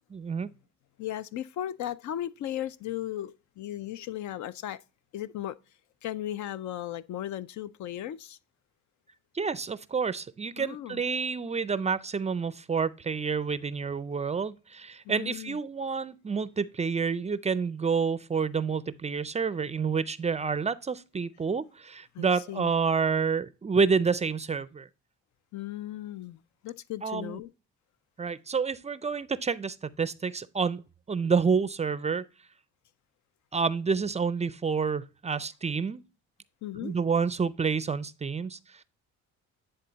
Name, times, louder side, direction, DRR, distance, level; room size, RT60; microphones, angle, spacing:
voice 1, 0.1-0.5 9.3-24.9 27.0-27.4 28.2-30.8 31.1-32.2 33.5-36.0 36.8-38.8, right 5 dB, 25° right, 0.4 m, -29 dB
voice 2, 1.0-4.8 5.1-5.6 6.0-8.4 10.6-11.0 15.0-15.6 22.1-22.7 25.5-27.5 36.6-36.9, left 12 dB, 70° left, 0.5 m, -36 dB
9.7 x 3.8 x 3.9 m
cardioid pair, 90°, 30 cm